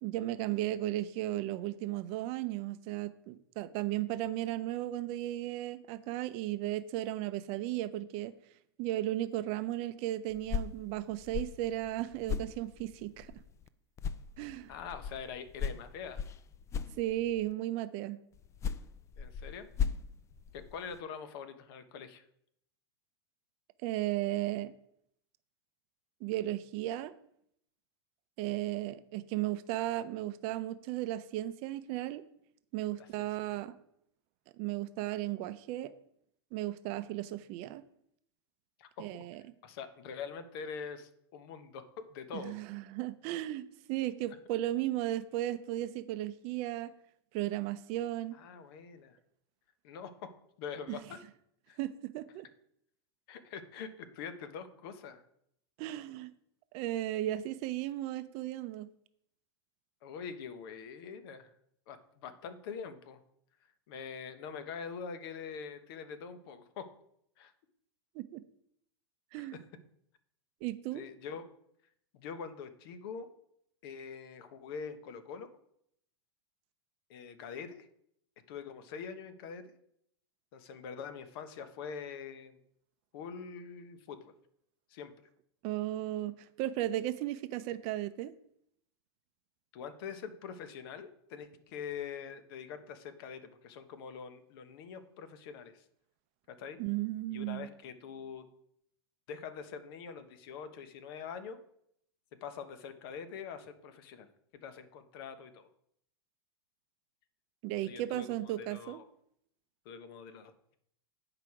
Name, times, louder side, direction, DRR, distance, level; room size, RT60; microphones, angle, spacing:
voice 1, 0.0-8.3 8.8-13.3 14.4-14.7 17.0-18.2 23.8-24.7 26.2-27.1 28.4-32.2 32.7-33.7 34.6-35.9 36.5-37.8 39.0-39.4 42.3-46.9 47.3-48.3 50.9-51.0 51.8-52.5 55.8-56.3 56.7-58.9 68.1-68.4 69.3-69.6 70.6-71.0 85.6-88.3 96.8-97.7 107.6-109.0, right 14 dB, 45° right, 13 dB, 0.6 m, -35 dB
sound 1, 10.3-13.7 14.0-17.5 18.3-21.0, left 6 dB, 20° left, 0.4 m, -39 dB
voice 2, 14.7-16.2 19.2-19.7 20.5-22.2 33.0-33.6 38.8-39.2 39.6-41.8 42.1-42.6 48.3-49.2 49.8-50.1 50.6-51.2 51.7-51.8 53.3-55.2 60.0-61.5 61.9-63.2 63.9-66.8 67.4-67.5 69.4-69.6 70.9-71.4 72.1-73.3 73.8-75.5 77.1-77.9 78.5-79.7 80.5-82.6 83.1-84.3 84.9-85.1 89.7-95.8 96.6-96.8 97.3-98.5 99.3-101.6 102.4-104.3 104.5-105.7 107.8-109.0 109.8-110.8, left 6 dB, 60° left, 10 dB, 1.1 m, -44 dB
9.1 x 4.9 x 4.8 m, 0.73 s
hypercardioid pair, 110°, 14 cm